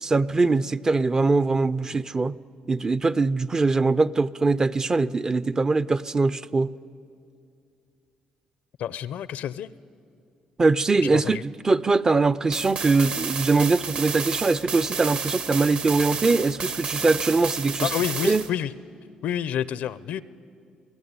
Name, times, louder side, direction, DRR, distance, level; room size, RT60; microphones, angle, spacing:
voice 1, 0.0-2.4 2.7-6.7 10.6-17.9 18.2-18.4, right 3 dB, 25° right, 0.5 m, -22 dB
voice 2, 8.8-9.7 11.1-11.4 17.8-18.7 19.2-20.2, left 10 dB, 75° left, 0.5 m, -29 dB
sound 1, 12.5-18.5, right 5 dB, 60° right, 1.4 m, -31 dB
23.5 x 16.0 x 9.6 m
cardioid pair, 90°, 2 cm